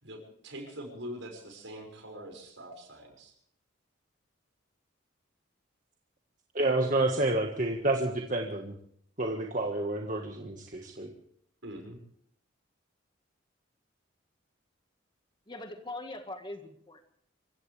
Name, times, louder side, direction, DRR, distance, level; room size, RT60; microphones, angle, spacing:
voice 1, 0.0-3.4 11.6-12.0, equal, 75° right, 3 dB, 5.9 m, -43 dB
voice 2, 6.5-8.7 9.2-11.1, right 2 dB, 40° right, 2 dB, 1.6 m, -29 dB
voice 3, 15.5-17.0, left 2 dB, 25° left, 6 dB, 1.7 m, -41 dB
26.5 x 16.0 x 3.4 m, 0.65 s
head